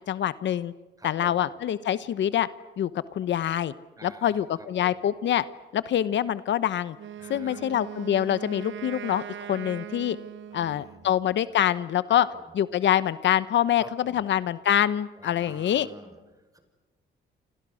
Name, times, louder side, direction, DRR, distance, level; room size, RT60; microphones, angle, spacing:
voice 1, 0.1-0.7 1.0-2.5 2.8-3.7 4.0-5.4 5.7-7.0 7.3-10.2 10.5-12.3 12.6-15.9, left 11 dB, 65° left, 15 dB, 1.0 m, -25 dB
voice 2, 1.0-1.5 4.0-5.0 7.2-7.7 10.5-11.3 12.1-12.5 13.8-14.2 15.2-16.6, right 1 dB, 15° right, 7 dB, 5.8 m, -48 dB
Wind instrument woodwind instrument, 6.9-11.1, right 10 dB, 70° right, 1.2 m, -40 dB
29.0 x 27.0 x 6.5 m, 1.2 s
cardioid pair, 90°, 20 cm